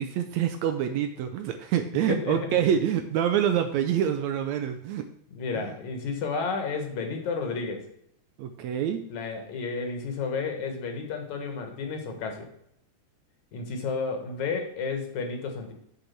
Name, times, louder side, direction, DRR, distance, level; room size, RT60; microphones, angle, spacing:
voice 1, 0.0-5.1 5.6-5.7 8.4-9.0, right 9 dB, 75° right, 8 dB, 1.7 m, -26 dB
voice 2, 2.1-2.5 5.3-7.9 9.1-12.5 13.5-15.7, left 4 dB, 70° left, 4 dB, 2.7 m, -31 dB
8.3 x 5.0 x 5.9 m, 0.71 s
omnidirectional pair, 3.6 m